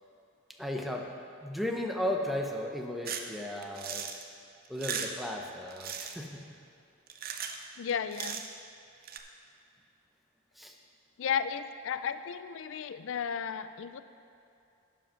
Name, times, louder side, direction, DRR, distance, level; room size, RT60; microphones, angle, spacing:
voice 1, 0.6-1.2 1.4-4.0 4.7-6.3 10.6-10.7, left 1 dB, ahead, 1 dB, 0.7 m, -35 dB
sound 1, 3.0-3.3 3.6-4.2 4.6-5.2 5.7-6.2 7.1-7.6 7.9-8.5 9.0-9.2, right 7 dB, 50° right, 0.6 m, -37 dB
voice 2, 7.8-8.4 11.2-14.0, left 7 dB, 65° left, 12 dB, 0.4 m, -34 dB
10.5 x 5.2 x 5.7 m, 2.6 s
head